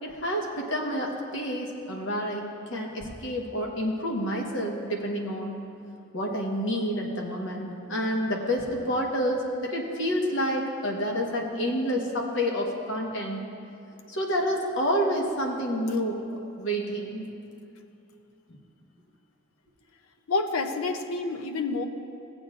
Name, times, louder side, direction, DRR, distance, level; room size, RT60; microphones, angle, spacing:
voice 1, 0.0-5.6 6.1-13.4 14.1-16.2 16.6-17.2, equal, 65° left, 0 dB, 1.3 m, -29 dB
voice 2, 20.3-21.9, left 3 dB, 80° left, 6 dB, 0.6 m, -28 dB
15.5 x 8.1 x 2.5 m, 2.7 s
head